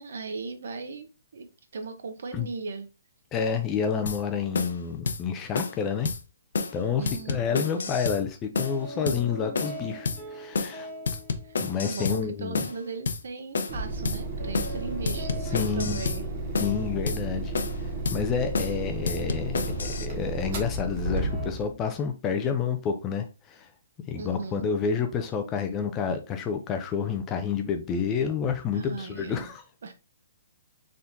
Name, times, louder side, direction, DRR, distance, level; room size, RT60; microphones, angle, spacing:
voice 1, 0.0-1.5 1.7-2.9 7.0-7.9 8.9-9.7 11.4-16.2 24.1-24.7 28.7-29.5 29.8-29.9, right 4 dB, 60° right, 0.8 m, -38 dB
voice 2, 3.3-6.1 6.7-10.9 11.6-12.6 15.5-16.0 16.6-17.5 17.8-23.7 24.1-29.6, left 6 dB, 15° left, 0.3 m, -29 dB
sound 1, 4.1-4.2 4.5-4.8 5.1-5.2 5.5-5.8 6.0-6.2 6.5-6.8 7.1-8.2 8.5-8.8 9.1-9.2 9.5-9.8 10.1-10.2 10.5-10.8 11.1-12.2 12.5-12.8 13.1-13.2 13.5-13.8 14.0-14.2 14.5-14.8 15.1-16.2 16.5-16.8 17.1-17.2 17.5-17.8 18.1-18.2 18.5-18.8 19.1-20.1, left 4 dB, 70° left, 0.6 m, -30 dB
sound 2, 8.5-12.4 14.4-17.9 21.0-21.5, equal, 5° right, 1.2 m, -41 dB
sound 3, 13.7-21.7, right 2 dB, 30° right, 0.9 m, -33 dB
4.3 x 3.6 x 2.6 m
hypercardioid pair, 175°, 0 cm